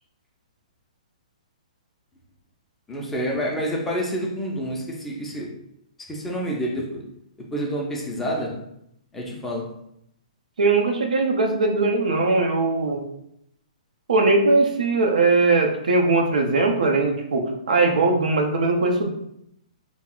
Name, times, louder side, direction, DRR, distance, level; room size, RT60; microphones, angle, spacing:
voice 1, 2.9-5.5 6.1-7.1 7.4-8.6 9.1-9.7, equal, 5° left, -2 dB, 0.3 m, -28 dB
voice 2, 10.6-13.0 14.1-19.1, right 3 dB, 85° right, 3 dB, 0.5 m, -20 dB
2.3 x 2.0 x 3.6 m, 0.75 s
hypercardioid pair, 160°, 4 cm